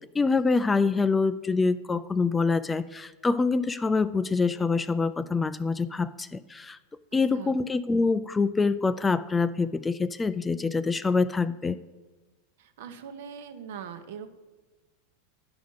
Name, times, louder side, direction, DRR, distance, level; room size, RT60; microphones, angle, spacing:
voice 1, 0.1-6.8 7.1-11.8, left 4 dB, 15° left, 15 dB, 0.3 m, -25 dB
voice 2, 12.6-14.3, right 7 dB, 70° right, 9 dB, 0.9 m, -41 dB
11.5 x 5.0 x 5.5 m, 1.2 s
hypercardioid pair, 120°, 0 cm